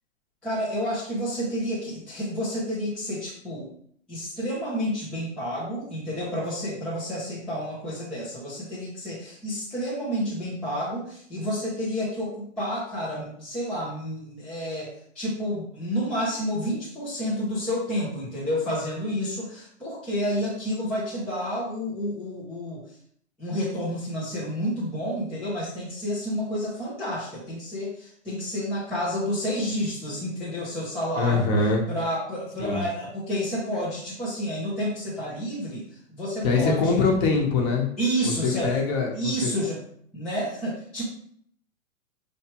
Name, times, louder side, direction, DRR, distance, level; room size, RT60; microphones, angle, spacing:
voice 1, 0.4-3.7 4.1-22.8 23.4-31.5 31.9-35.8 36.1-37.1 38.0-38.8 39.1-39.8 40.1-41.0, equal, ahead, -9 dB, 0.5 m, -30 dB
voice 2, 31.2-31.8 32.6-32.8 36.4-37.9 38.2-39.5, left 4 dB, 30° left, 1 dB, 1.0 m, -23 dB
5.7 x 3.2 x 2.9 m, 0.63 s
hypercardioid pair, 150°, 41 cm